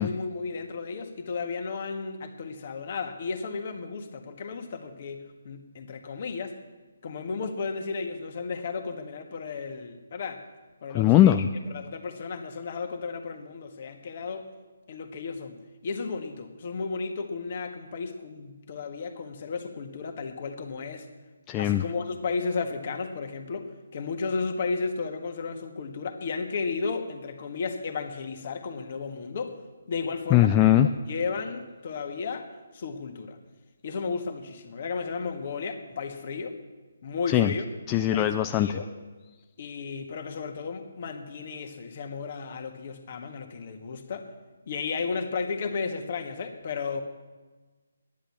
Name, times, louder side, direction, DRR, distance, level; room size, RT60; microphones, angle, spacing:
voice 1, 0.0-6.6 7.0-10.4 10.8-11.4 11.7-14.5 14.9-21.1 21.6-29.6 29.9-30.5 30.8-33.4 33.8-36.6 37.0-37.7 38.1-38.3 38.6-38.9 39.6-44.3 44.7-47.0, left 4 dB, 45° left, 5 dB, 1.6 m, -34 dB
voice 2, 10.9-11.5 21.5-21.8 30.3-30.9 37.3-37.5 37.9-38.7, left 12 dB, 20° left, 7 dB, 0.4 m, -20 dB
11.5 x 10.5 x 8.5 m, 1.3 s
figure-of-eight pair, 145°, 0 cm